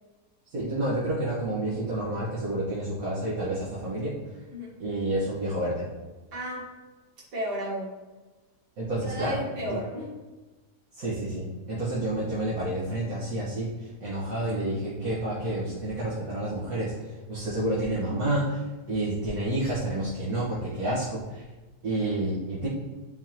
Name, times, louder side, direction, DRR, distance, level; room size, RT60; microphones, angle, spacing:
voice 1, 0.5-4.1 4.8-5.9 8.8-9.8 10.9-21.4 21.8-22.7, right 1 dB, 60° right, -8 dB, 1.6 m, -29 dB
voice 2, 4.5-4.8 6.3-6.8 7.3-8.0 9.0-10.1, equal, 80° right, -6 dB, 2.1 m, -34 dB
9.6 x 3.6 x 3.0 m, 1.2 s
omnidirectional pair, 1.8 m